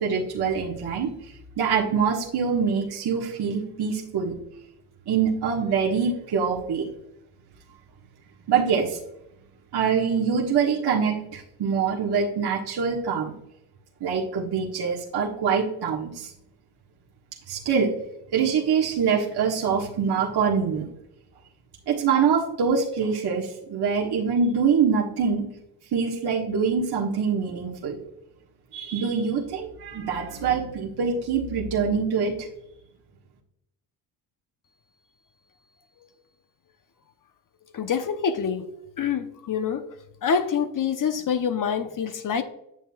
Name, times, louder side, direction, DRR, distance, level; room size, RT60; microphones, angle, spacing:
voice 1, 0.0-4.4 5.1-6.8 8.5-9.0 9.7-13.3 14.0-16.3 17.5-17.9 18.3-20.8 21.9-25.5 25.9-28.0 28.7-32.5, right 6 dB, 50° right, 1.5 m, -24 dB
voice 2, 37.7-38.6 39.0-39.9 40.2-42.4, left 7 dB, 40° left, 0.8 m, -26 dB
9.1 x 7.1 x 2.3 m
supercardioid pair, 65°, 50 cm